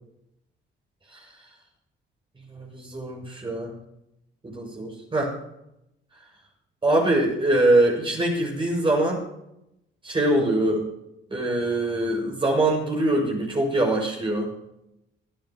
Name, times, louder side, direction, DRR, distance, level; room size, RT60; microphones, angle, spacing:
voice 1, 2.5-3.7 4.4-5.3 6.8-9.2 10.0-10.9 11.3-14.5, right 1 dB, 25° right, -1 dB, 6.5 m, -23 dB
23.0 x 11.5 x 3.1 m, 0.83 s
cardioid pair, 90°, 20 cm